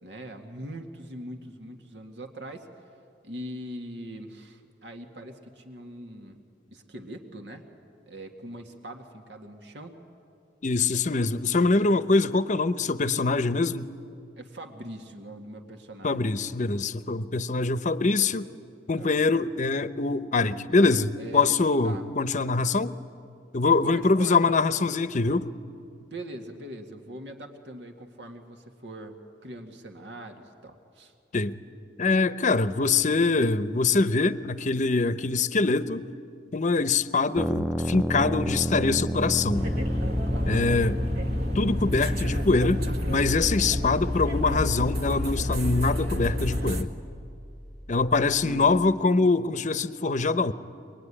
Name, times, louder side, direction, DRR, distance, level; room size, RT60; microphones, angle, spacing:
voice 1, 0.0-2.7 3.2-6.4 6.7-7.7 8.1-9.9 14.4-16.2 19.0-19.2 21.2-22.1 23.8-24.4 26.1-31.1 40.3-40.6 48.4-48.9, right 1 dB, 85° right, 5 dB, 1.9 m, -41 dB
voice 2, 10.6-13.9 16.0-18.5 18.9-23.0 23.5-25.5 31.3-31.6 32.0-36.1 36.5-39.7 40.5-41.0 41.5-46.9 47.9-50.5, left 3 dB, 45° left, 13 dB, 0.7 m, -24 dB
sound 1, 37.4-49.0, equal, 5° right, 0.5 m, -32 dB
sound 2, 39.5-46.8, left 1 dB, 60° right, 1.7 m, -29 dB
25.0 x 21.0 x 9.9 m, 2.5 s
head